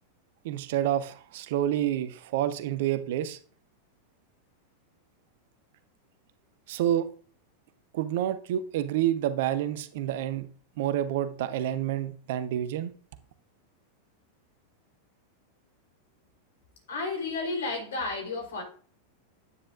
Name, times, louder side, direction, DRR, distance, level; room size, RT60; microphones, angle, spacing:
voice 1, 0.4-3.4 6.7-7.1 7.9-10.5 10.8-12.9, right 11 dB, 55° right, 0.8 m, -28 dB
voice 2, 16.9-18.6, left 3 dB, 65° left, 3.8 m, -32 dB
9.8 x 9.4 x 2.6 m
figure-of-eight pair, 90°, 0 cm